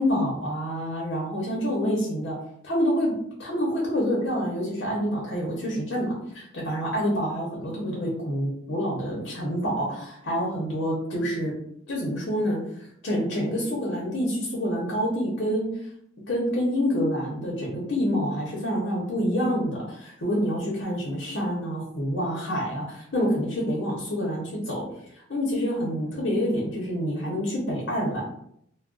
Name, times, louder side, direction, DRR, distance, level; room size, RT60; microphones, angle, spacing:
voice 1, 0.0-2.4 2.6-3.1 3.4-11.5 11.9-12.6 13.0-15.7 16.3-24.8 25.3-28.2, equal, 65° left, -3 dB, 0.8 m, -27 dB
2.3 x 2.2 x 3.7 m, 0.71 s
head